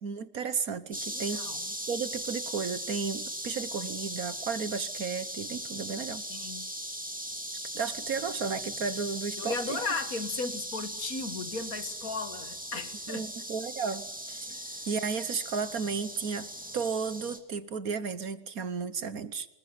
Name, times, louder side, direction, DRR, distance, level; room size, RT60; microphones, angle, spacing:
voice 1, 0.0-1.5 1.9-6.2 7.7-9.8 13.1-14.5 14.9-19.5, right 5 dB, 55° right, 1.5 m, -33 dB
sound 1, 0.9-17.4, equal, 5° right, 2.7 m, -39 dB
voice 2, 1.1-1.7 6.3-6.7 9.4-13.3 14.5-14.9, left 4 dB, 55° left, 2.2 m, -36 dB
26.5 x 20.0 x 9.6 m
omnidirectional pair, 1.9 m